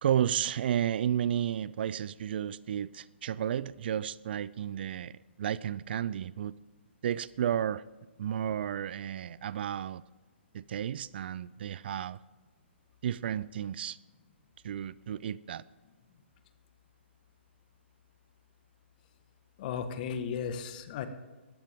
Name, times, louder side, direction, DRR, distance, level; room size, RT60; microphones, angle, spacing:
voice 1, 0.0-5.1 5.4-6.5 7.0-7.8 8.2-10.0 10.5-12.2 13.0-14.0 14.6-15.6, right 10 dB, 55° right, 21 dB, 0.4 m, -32 dB
voice 2, 19.6-21.1, left 7 dB, 45° left, 9 dB, 1.6 m, -35 dB
19.0 x 14.0 x 3.7 m, 1.3 s
hypercardioid pair, 135°, 7 cm